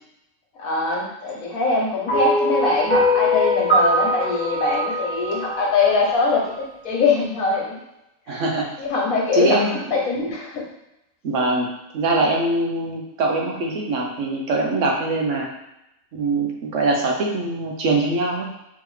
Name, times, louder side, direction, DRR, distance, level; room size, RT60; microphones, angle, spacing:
voice 1, 0.6-7.8 8.3-8.4 8.8-9.6 9.9-10.6, left 3 dB, 75° left, -3 dB, 1.4 m, -22 dB
sound 1, 2.1-6.4, left 1 dB, 25° left, 1.0 m, -22 dB
voice 2, 8.3-8.7 9.3-10.0 11.2-15.5 16.1-18.5, right 2 dB, 65° right, 0 dB, 1.1 m, -23 dB
3.8 x 3.2 x 3.1 m, 0.88 s
omnidirectional pair, 1.5 m